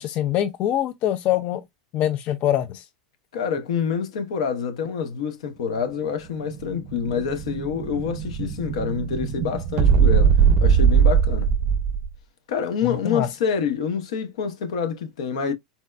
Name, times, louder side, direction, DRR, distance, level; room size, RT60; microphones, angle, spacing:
voice 1, 0.0-1.6 1.9-2.9 12.8-13.3, left 12 dB, 40° left, 0.3 m, -24 dB
voice 2, 3.3-11.5 12.5-15.5, left 6 dB, 75° left, 0.8 m, -27 dB
Explosion, 6.0-12.1, right 7 dB, 40° right, 0.8 m, -20 dB
4.1 x 2.2 x 2.3 m
supercardioid pair, 135°, 3 cm